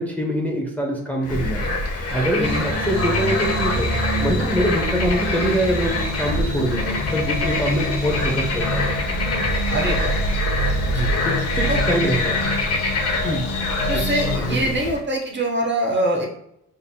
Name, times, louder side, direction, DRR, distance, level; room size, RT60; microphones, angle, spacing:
voice 1, 0.0-1.6 2.1-8.9 11.2-12.4 13.9-14.0 14.4-14.7, equal, 5° left, -1 dB, 0.8 m, -24 dB
Bird / Frog, 1.2-15.0, left 2 dB, 45° left, 0.9 m, -25 dB
voice 2, 2.3-2.7 9.7-10.2 10.9-11.1 11.7-11.8 13.2-13.5 13.9-16.3, right 1 dB, 35° right, 0 dB, 1.0 m, -24 dB
sound 1, 2.4-14.4, equal, 80° left, 0.8 m, -26 dB
5.1 x 2.8 x 2.2 m, 0.77 s
supercardioid pair, 70°, 34 cm